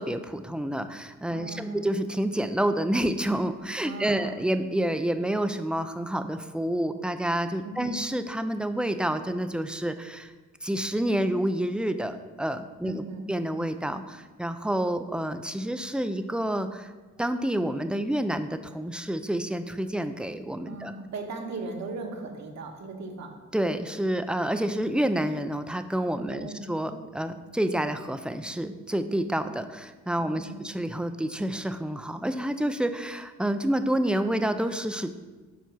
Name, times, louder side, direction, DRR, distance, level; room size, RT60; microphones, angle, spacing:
voice 1, 0.0-10.3 10.6-16.9 17.2-20.9 23.5-35.1, right 1 dB, 5° right, 9 dB, 0.4 m, -28 dB
voice 2, 1.3-1.9 3.8-4.4 7.6-8.0 12.8-13.3 20.6-23.3 26.3-26.7 30.2-30.6, right 3 dB, 60° right, 2 dB, 1.4 m, -38 dB
7.1 x 4.5 x 6.1 m, 1.3 s
cardioid pair, 90°, 31 cm